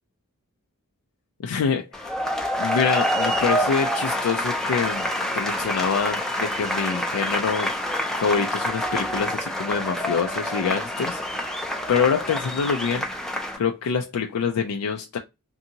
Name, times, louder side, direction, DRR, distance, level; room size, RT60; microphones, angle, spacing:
voice 1, 1.4-2.1 2.6-5.1 5.3-7.7 8.2-11.2 11.9-13.1 13.6-15.2, left 6 dB, 75° left, 0.4 m, -25 dB
sound 1, 1.9-13.6, equal, ahead, 0.4 m, -27 dB
2.6 x 2.6 x 2.7 m
head